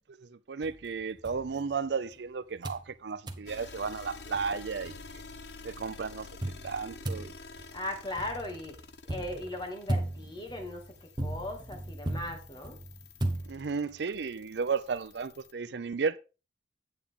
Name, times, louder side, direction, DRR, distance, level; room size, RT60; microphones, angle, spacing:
voice 1, 0.1-4.9 5.6-6.3 6.6-7.3 13.5-16.2, right 5 dB, 80° right, 0.5 m, -34 dB
sound 1, 0.6-2.2 2.6-2.9 3.3-3.5 4.0-4.1 4.3-5.4 6.4-14.0, right 1 dB, 25° right, 1.0 m, -37 dB
sound 2, 3.5-15.5, left 4 dB, 80° left, 0.9 m, -50 dB
voice 2, 7.7-8.8 9.0-12.8, left 1 dB, 25° left, 2.3 m, -38 dB
9.1 x 8.7 x 3.6 m
head